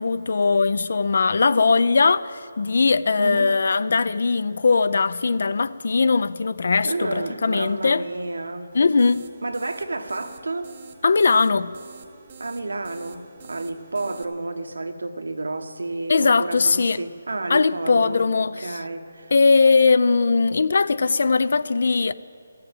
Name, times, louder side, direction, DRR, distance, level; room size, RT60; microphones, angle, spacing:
voice 1, 0.0-8.0 8.7-9.3 11.0-11.7 16.1-17.0 17.5-18.7 19.3-22.1, left 4 dB, 60° left, 0.5 m, -20 dB
voice 2, 3.2-3.5 6.8-8.7 9.4-10.7 12.4-19.3, right 2 dB, 90° right, 1.2 m, -31 dB
sound 1, 8.7-14.2, right 5 dB, 35° right, 0.9 m, -47 dB
14.5 x 7.8 x 8.9 m
hypercardioid pair, 165°, 0 cm